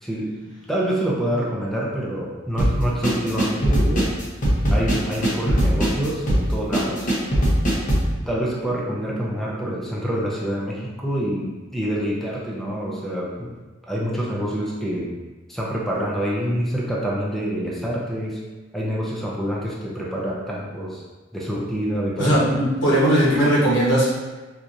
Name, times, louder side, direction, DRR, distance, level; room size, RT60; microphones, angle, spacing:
voice 1, 0.0-4.1 4.7-7.1 8.3-13.5 13.9-15.1 15.5-18.4 18.7-21.0 21.3-22.4, equal, ahead, -5 dB, 0.5 m, -26 dB
sound 1, 2.6-8.1, equal, 45° left, 0.8 m, -20 dB
voice 2, 22.2-24.1, right 1 dB, 80° left, -6 dB, 1.2 m, -18 dB
4.3 x 2.5 x 2.6 m, 1.2 s
head